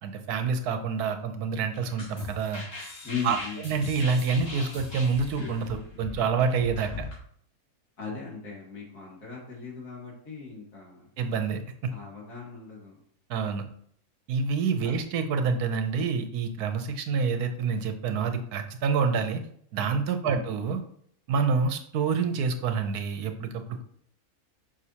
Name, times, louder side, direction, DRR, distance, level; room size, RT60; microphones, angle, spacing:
voice 1, 0.0-2.6 3.2-3.4 3.6-7.1 11.2-11.9 13.3-13.6 14.3-19.4 19.7-20.8 21.3-23.8, right 5 dB, 80° right, 7 dB, 1.3 m, -27 dB
sound 1, 1.7-7.2, left 3 dB, 65° left, 2.5 m, -40 dB
voice 2, 3.0-3.6 8.0-11.1 11.9-13.0 14.8-14.9 20.2-20.5, left 5 dB, 90° left, -3 dB, 2.7 m, -38 dB
6.3 x 5.5 x 2.8 m, 0.64 s
omnidirectional pair, 1.6 m